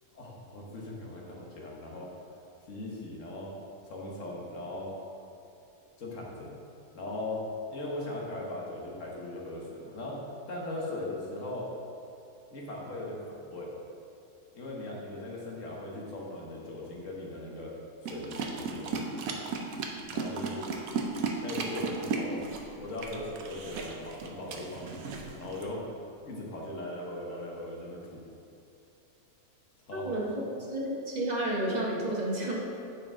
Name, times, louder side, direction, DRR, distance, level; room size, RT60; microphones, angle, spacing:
voice 1, 0.1-2.1 2.7-3.5 3.8-4.9 6.0-6.5 6.9-7.4 7.7-10.2 10.5-11.7 12.5-13.7 14.5-17.7 18.0-19.4 20.1-20.7 21.3-22.5 22.8-25.8 26.2-28.2 29.9-30.2, left 1 dB, 60° left, -3 dB, 1.5 m, -39 dB
sound 1, 18.1-25.7, right 4 dB, 75° right, 1.1 m, -35 dB
voice 2, 29.9-32.5, right 1 dB, 35° right, -2 dB, 1.0 m, -31 dB
9.6 x 4.3 x 3.7 m, 2.7 s
omnidirectional pair, 1.5 m